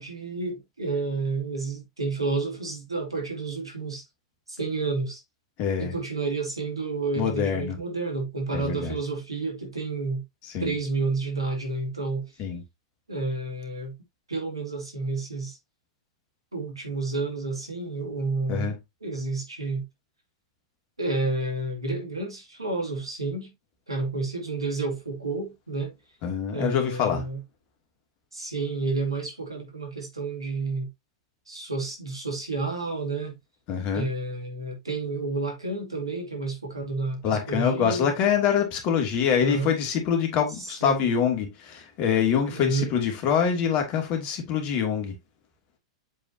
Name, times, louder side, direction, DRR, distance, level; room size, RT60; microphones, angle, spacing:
voice 1, 0.0-4.0 4.5-5.2 5.8-10.2 10.6-12.3 13.1-13.9 14.3-15.6 16.5-18.7 19.0-19.8 21.0-23.5 23.9-25.9 26.5-27.4 28.3-30.9 31.5-33.4 33.9-38.1 39.4-39.7 40.6-41.1 42.5-42.9, right 3 dB, 85° right, 2.9 m, -30 dB
voice 2, 5.6-5.9 7.1-7.8 8.5-8.9 10.5-10.7 12.4-12.6 18.5-18.8 26.2-27.2 33.7-34.1 37.2-45.1, left 7 dB, 40° left, 2.7 m, -25 dB
7.5 x 5.1 x 2.9 m
figure-of-eight pair, 100°, 3 cm